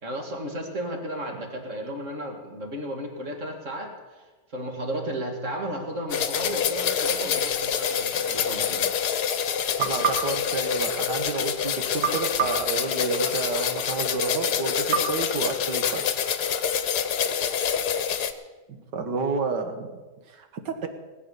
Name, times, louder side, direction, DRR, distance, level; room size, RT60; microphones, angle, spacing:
voice 1, 0.0-4.3 4.5-8.9, equal, 45° right, 3 dB, 2.4 m, -34 dB
sound 1, 6.1-18.3, left 8 dB, 70° left, 1.4 m, -26 dB
sound 2, 9.8-11.4 12.0-13.6 14.9-16.3, right 6 dB, 65° right, 2.1 m, -31 dB
voice 2, 9.8-16.1 18.7-20.0 20.3-20.9, right 4 dB, 85° right, 7 dB, 2.1 m, -30 dB
19.5 x 8.6 x 6.8 m, 1.2 s
omnidirectional pair, 1.8 m